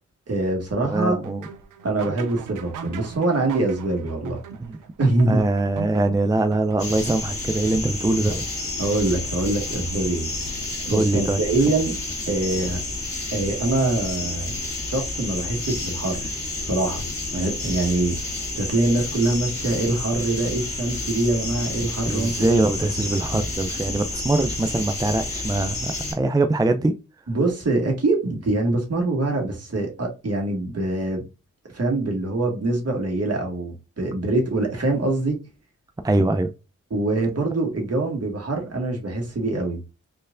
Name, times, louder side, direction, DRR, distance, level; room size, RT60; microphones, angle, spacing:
voice 1, 0.3-1.2 1.8-4.4 5.0-5.4 8.8-10.3 10.9-11.9 12.3-12.8 13.3-14.5 14.8-16.3 16.6-17.0 17.3-22.5 27.3-31.2 31.7-35.4 36.9-39.8, right 2 dB, 50° right, 1.9 m, -24 dB
voice 2, 0.8-1.5 4.6-4.8 5.3-8.4 10.9-11.4 22.1-26.9 36.0-36.5, right 2 dB, 15° right, 0.5 m, -22 dB
sound 1, 1.2-7.1, right 6 dB, 90° right, 0.6 m, -38 dB
sound 2, 6.8-26.1, left 2 dB, 45° left, 2.1 m, -30 dB
4.4 x 3.2 x 2.5 m
cardioid pair, 45°, 31 cm